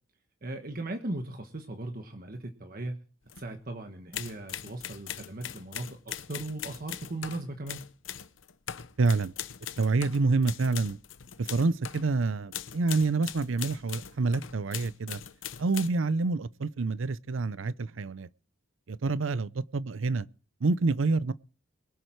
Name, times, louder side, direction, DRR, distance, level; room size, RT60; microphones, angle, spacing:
voice 1, 0.4-3.0 3.4-7.8, right 2 dB, 50° right, 1.3 m, -38 dB
sound 1, 3.3-3.5 4.1-12.1 12.5-15.9, left 10 dB, 80° left, 0.8 m, -40 dB
voice 2, 9.0-9.3 9.8-11.0 11.4-15.2 15.6-18.3 18.9-20.3 20.6-21.3, right 3 dB, 85° right, 0.6 m, -27 dB
22.5 x 7.9 x 4.6 m
head